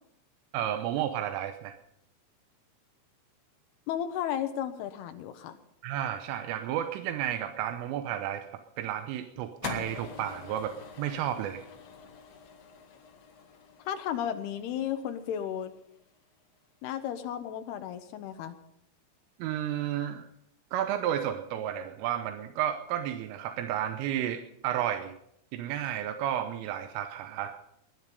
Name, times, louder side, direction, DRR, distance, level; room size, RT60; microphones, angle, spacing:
voice 1, 0.5-1.8 5.8-11.6 19.4-20.3 20.7-25.1 25.5-27.6, right 11 dB, 85° right, 8 dB, 3.4 m, -32 dB
voice 2, 3.9-5.6 13.9-15.7 16.8-18.6, left 9 dB, 85° left, 8 dB, 2.3 m, -34 dB
sound 1, 9.6-16.0, left 5 dB, 55° left, 3.5 m, -45 dB
20.5 x 11.0 x 5.3 m, 0.77 s
omnidirectional pair, 5.7 m